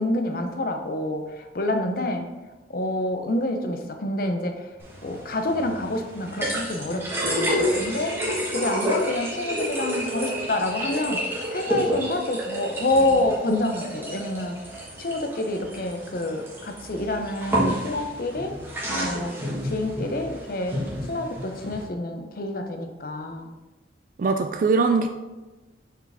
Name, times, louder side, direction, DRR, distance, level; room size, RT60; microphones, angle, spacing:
voice 1, 0.0-2.3 2.7-4.6 5.0-14.6 15.0-18.5 18.9-19.3 19.6-20.8 21.0-23.5, left 1 dB, 50° left, 5 dB, 0.6 m, -27 dB
sound 1, 4.8-21.8, equal, 15° right, 1.4 m, -30 dB
voice 2, 24.2-25.1, right 4 dB, 45° right, 6 dB, 0.3 m, -21 dB
5.9 x 4.6 x 3.4 m, 1.1 s
head